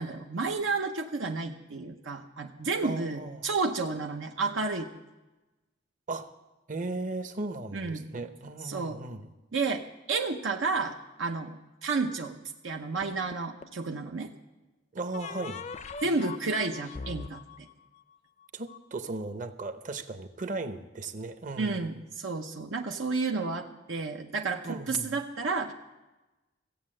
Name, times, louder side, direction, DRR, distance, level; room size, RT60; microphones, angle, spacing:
voice 1, 0.0-4.9 7.7-8.0 8.6-9.0 9.5-12.4 12.6-14.3 16.0-17.7 21.6-25.7, right 4 dB, 85° right, 2 dB, 0.8 m, -31 dB
voice 2, 2.8-3.5 6.1-6.3 6.7-9.3 14.9-15.6 18.5-21.9 24.6-25.2, right 2 dB, 45° right, 9 dB, 0.8 m, -36 dB
sound 1, 13.0-13.9 15.1-18.8, left 5 dB, 35° left, 0.5 m, -42 dB
15.0 x 8.3 x 7.5 m, 1.1 s
head